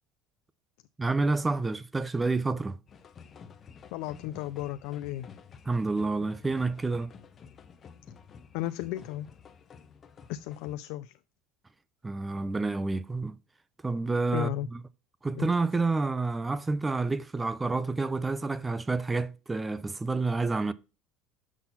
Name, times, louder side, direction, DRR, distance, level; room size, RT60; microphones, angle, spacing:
voice 1, 1.0-2.8 5.7-7.1 12.0-13.4 13.8-14.5 15.2-20.7, right 3 dB, 15° right, 0.4 m, -29 dB
sound 1, 2.9-10.8, left 6 dB, 30° left, 0.7 m, -51 dB
voice 2, 3.9-5.3 8.5-9.3 10.3-11.1 14.3-14.7 15.3-15.5, left 14 dB, 75° left, 0.3 m, -34 dB
6.0 x 5.8 x 4.1 m
cardioid pair, 135°, 0 cm